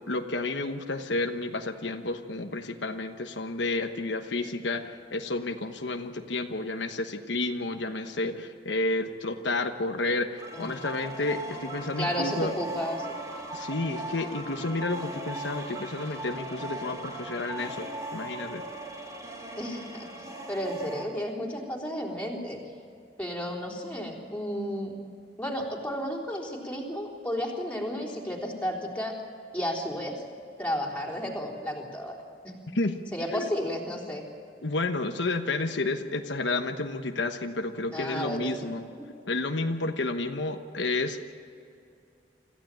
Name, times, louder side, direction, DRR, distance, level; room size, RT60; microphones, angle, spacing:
voice 1, 0.0-12.5 13.5-18.6 32.7-33.0 33.3-33.5 34.6-38.9 39.3-41.2, left 2 dB, 85° left, 5 dB, 1.2 m, -31 dB
sound 1, 10.4-21.0, right 1 dB, 20° right, 2.7 m, -38 dB
voice 2, 12.0-13.2 19.6-22.6 23.2-24.9 25.4-29.2 29.5-30.2 30.6-32.2 32.4-32.6 33.1-34.2 37.9-38.5, equal, 10° left, -2 dB, 3.7 m, -33 dB
26.0 x 15.0 x 9.0 m, 2.5 s
head